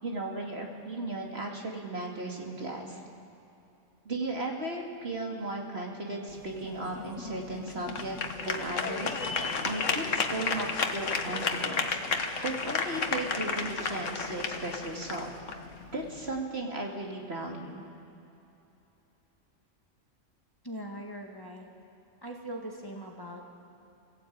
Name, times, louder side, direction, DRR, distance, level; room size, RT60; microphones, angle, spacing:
voice 1, 0.0-3.0 4.0-8.2 8.4-12.0 12.4-15.3 15.9-17.8, right 2 dB, 55° right, -1 dB, 2.8 m, -36 dB
sound 1, 6.3-16.4, left 4 dB, 75° left, 1.6 m, -33 dB
voice 2, 20.6-21.7 22.2-23.7, right 1 dB, 15° left, 0 dB, 2.2 m, -41 dB
26.0 x 17.0 x 8.7 m, 2.8 s
omnidirectional pair, 1.3 m